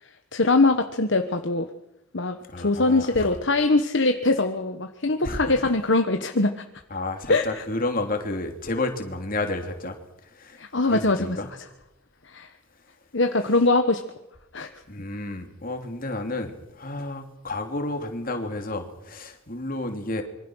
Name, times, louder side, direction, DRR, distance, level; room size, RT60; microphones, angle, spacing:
voice 1, 0.3-1.7 2.1-6.6 7.3-7.5 10.6-11.4 12.3-12.5 13.1-14.0 14.5-14.7, left 2 dB, 55° left, 6 dB, 1.3 m, -22 dB
voice 2, 2.5-3.3 5.2-5.7 6.9-10.0 10.2-11.5 14.9-20.2, left 2 dB, 40° left, 5 dB, 3.0 m, -31 dB
26.0 x 24.0 x 6.4 m, 0.87 s
head